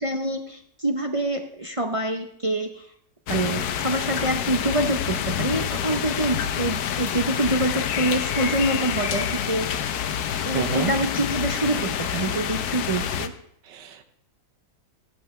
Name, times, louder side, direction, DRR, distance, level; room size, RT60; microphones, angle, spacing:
voice 1, 0.0-2.9 3.3-9.7 10.4-13.3, right 1 dB, 35° right, 4 dB, 0.5 m, -26 dB
sound 1, 3.3-13.3, left 9 dB, 70° left, 1.2 m, -27 dB
voice 2, 10.5-10.9 13.7-14.0, right 7 dB, 90° right, 8 dB, 1.7 m, -28 dB
15.5 x 12.5 x 3.2 m, 0.69 s
omnidirectional pair, 1.8 m